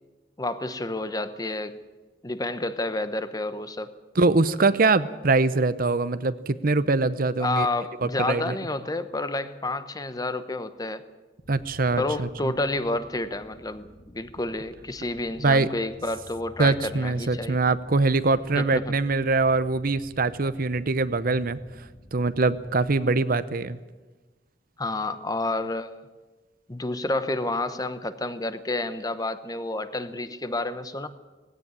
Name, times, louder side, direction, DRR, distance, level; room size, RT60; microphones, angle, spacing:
voice 1, 0.4-1.8 2.2-3.9 7.4-11.0 12.0-17.6 18.5-19.0 24.8-25.9 26.7-31.1, left 2 dB, 20° left, 11 dB, 1.0 m, -30 dB
voice 2, 4.1-7.7 8.0-8.6 11.5-12.5 15.4-15.7 16.6-21.6 22.1-23.8, right 3 dB, 50° right, 14 dB, 0.8 m, -23 dB
sound 1, 11.4-23.0, left 1 dB, 70° left, 3.9 m, -51 dB
18.0 x 16.5 x 9.7 m, 1.2 s
head